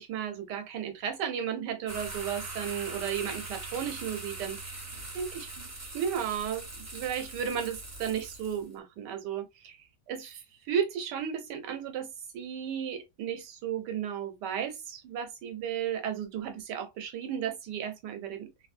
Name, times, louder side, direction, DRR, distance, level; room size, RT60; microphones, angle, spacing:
voice 1, 0.0-4.8 5.1-12.1 12.3-18.5, right 8 dB, 80° right, 1.2 m, -34 dB
sound 1, 1.9-8.7, right 2 dB, 20° right, 0.4 m, -41 dB
3.0 x 2.7 x 2.4 m
omnidirectional pair, 1.9 m